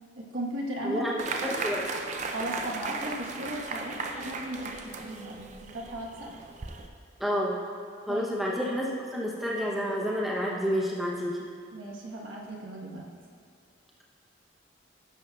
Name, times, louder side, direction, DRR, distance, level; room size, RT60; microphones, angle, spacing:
voice 1, 0.2-1.0 1.4-1.6 2.3-6.3 8.1-8.2 11.7-13.1, right 1 dB, 85° right, -2 dB, 1.2 m, -36 dB
voice 2, 0.8-1.8 7.2-7.6 8.1-11.4, equal, ahead, -5 dB, 0.7 m, -29 dB
sound 1, 1.2-6.9, right 3 dB, 35° right, 0.4 m, -36 dB
10.5 x 7.1 x 2.3 m, 2.3 s
head